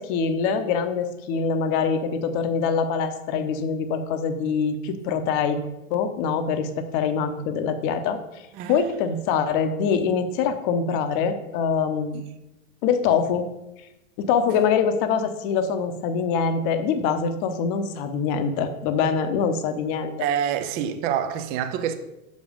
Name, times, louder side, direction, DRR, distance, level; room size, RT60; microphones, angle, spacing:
voice 1, 0.0-5.6 5.9-8.2 8.7-12.2 12.8-13.5 14.2-20.1, left 6 dB, 40° left, 0.8 m, -24 dB
voice 2, 8.5-8.9 14.5-14.7 20.2-21.9, right 9 dB, 25° right, 0.4 m, -27 dB
6.4 x 5.2 x 5.1 m
hypercardioid pair, 130°, 41 cm